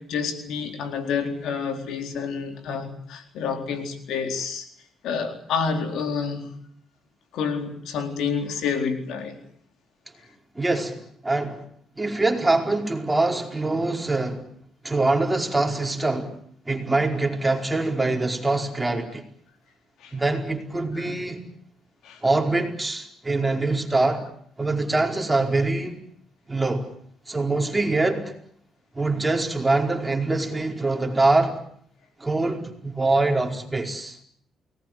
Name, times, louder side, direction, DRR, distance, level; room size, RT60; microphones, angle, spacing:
voice 1, 0.0-4.7 5.0-6.5 7.3-9.4 20.0-20.2 20.9-21.1 22.0-22.2, left 6 dB, 80° left, 6 dB, 4.2 m, -29 dB
voice 2, 10.5-11.6 12.0-14.5 14.8-16.4 16.6-19.2 20.1-21.4 22.2-24.3 24.6-26.0 26.5-26.9 27.3-28.3 28.9-31.5 32.2-34.2, right 2 dB, 15° right, 2 dB, 4.8 m, -24 dB
29.0 x 19.5 x 9.3 m, 0.66 s
cardioid pair, 90°, 0 cm